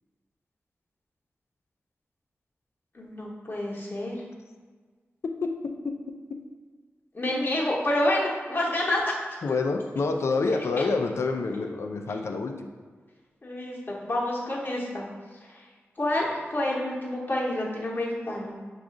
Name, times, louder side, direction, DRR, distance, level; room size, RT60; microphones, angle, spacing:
voice 1, 2.9-4.2 7.1-9.4 13.4-15.1 15.5-15.6 16.0-16.2 16.5-18.6, left 1 dB, 40° left, -4 dB, 0.9 m, -28 dB
voice 2, 5.4-6.4 9.4-12.7, left 3 dB, 70° left, 4 dB, 0.4 m, -28 dB
6.0 x 2.4 x 3.7 m, 1.5 s
wide cardioid pair, 90°, 5 cm